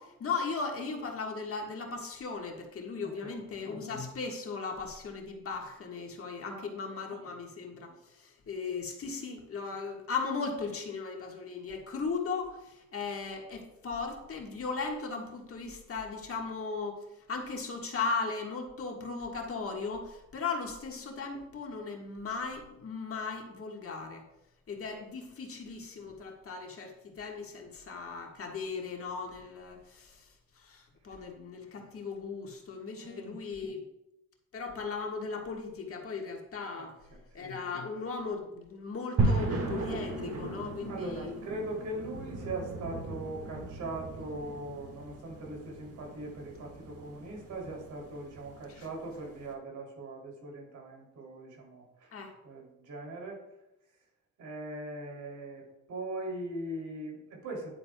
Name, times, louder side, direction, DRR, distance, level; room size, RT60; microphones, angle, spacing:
voice 1, 0.0-24.2 24.7-33.8 34.5-37.0 37.3-41.4 48.7-48.9 52.1-52.3, left 4 dB, 50° left, 1 dB, 1.6 m, -37 dB
voice 2, 3.0-3.3 6.5-6.7 7.3-7.4 33.0-33.4 36.8-36.9 37.3-37.5 40.9-52.1 52.4-53.4 54.4-57.7, right 2 dB, 70° right, -1 dB, 3.1 m, -40 dB
sound 1, 39.2-49.4, right 2 dB, 50° right, 1.8 m, -36 dB
9.8 x 9.4 x 2.3 m, 0.90 s
cardioid pair, 90°, 30 cm